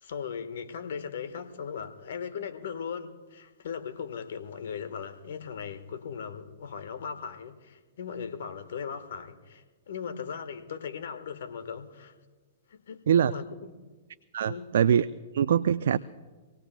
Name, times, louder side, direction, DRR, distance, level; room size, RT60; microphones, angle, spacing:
voice 1, 0.0-12.1 12.7-13.7 14.4-14.7, left 6 dB, 70° left, 9 dB, 1.4 m, -38 dB
voice 2, 14.3-15.1 15.3-16.0, right 8 dB, 70° right, 14 dB, 0.4 m, -23 dB
25.5 x 18.0 x 2.2 m, 1.3 s
hypercardioid pair, 115°, 0 cm